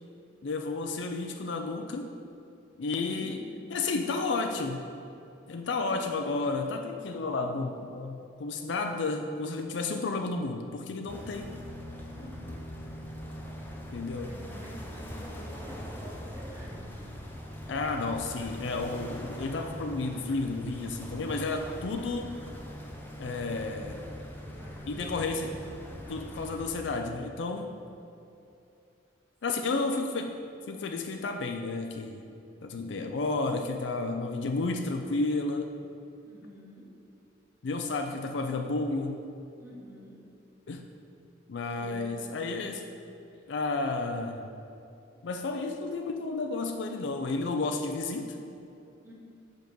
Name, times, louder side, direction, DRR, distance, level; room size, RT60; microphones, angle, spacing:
voice 1, 0.4-2.1 2.8-4.9 5.5-11.5 13.9-14.4 17.7-22.3 23.2-24.1 24.9-25.5 26.1-27.8 29.4-30.4 30.7-32.2 32.6-35.7 37.6-39.2 40.7-40.9 41.5-42.9 43.5-44.5 45.2-48.4, left 3 dB, 70° left, 4 dB, 0.4 m, -32 dB
voice 2, 3.1-4.1 5.8-6.1 12.1-12.5 14.2-17.1 24.4-25.4 36.2-36.9 39.6-40.2 41.8-42.6 49.0-49.1, equal, 10° right, -4 dB, 0.9 m, -49 dB
sound 1, 11.1-26.7, equal, 10° left, 0.7 m, -42 dB
5.3 x 5.1 x 6.1 m, 2.7 s
head